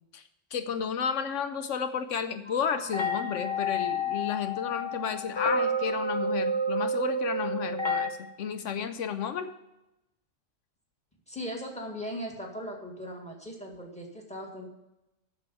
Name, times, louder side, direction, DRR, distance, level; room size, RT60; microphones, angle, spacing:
voice 1, 0.5-9.5, left 7 dB, 80° left, 9 dB, 1.0 m, -32 dB
sound 1, 2.5-8.1, equal, 25° left, 1.0 m, -30 dB
voice 2, 11.3-14.7, equal, 5° left, 1 dB, 1.9 m, -38 dB
8.1 x 6.9 x 8.4 m, 0.92 s
omnidirectional pair, 1.3 m